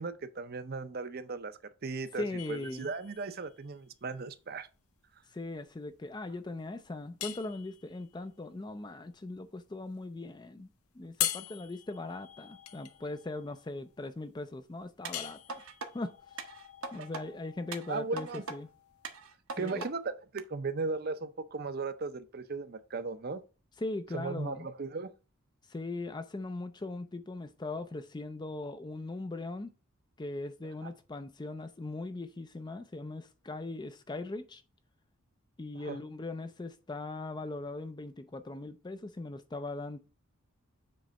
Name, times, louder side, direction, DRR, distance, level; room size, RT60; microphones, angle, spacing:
voice 1, 0.0-1.5 1.8-4.7 17.9-18.4 19.6-23.4 24.1-25.1 30.8-30.9 35.7-36.0, right 4 dB, 45° right, 0.6 m, -37 dB
voice 2, 2.2-2.9 5.3-10.7 10.9-15.4 15.9-16.5 16.9-18.7 19.5-19.9 23.8-24.7 25.7-29.7 30.2-34.6 35.6-40.0, left 2 dB, 20° left, 0.4 m, -40 dB
sound 1, 2.4-19.2, left 12 dB, 75° left, 0.6 m, -43 dB
sound 2, 15.0-15.9 16.4-17.2 17.7-18.6 19.0-19.9 20.4-20.5, right 4 dB, 70° right, 0.9 m, -41 dB
7.6 x 3.3 x 5.2 m
head